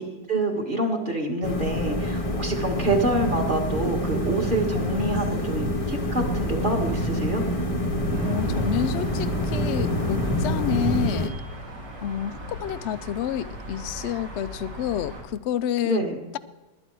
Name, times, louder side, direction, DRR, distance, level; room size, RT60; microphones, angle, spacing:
voice 1, 0.0-7.5 15.8-16.2, right 2 dB, 30° right, 1 dB, 1.9 m, -27 dB
sound 1, 1.4-11.3, left 1 dB, 25° left, 0.7 m, -28 dB
sound 2, 2.7-11.1, right 3 dB, 55° right, 1.9 m, -32 dB
sound 3, 8.1-15.2, equal, 90° right, 2.9 m, -39 dB
voice 2, 8.2-11.3 12.0-16.0, left 10 dB, 80° left, 13 dB, 0.6 m, -29 dB
21.0 x 9.8 x 4.7 m, 1.1 s
omnidirectional pair, 1.8 m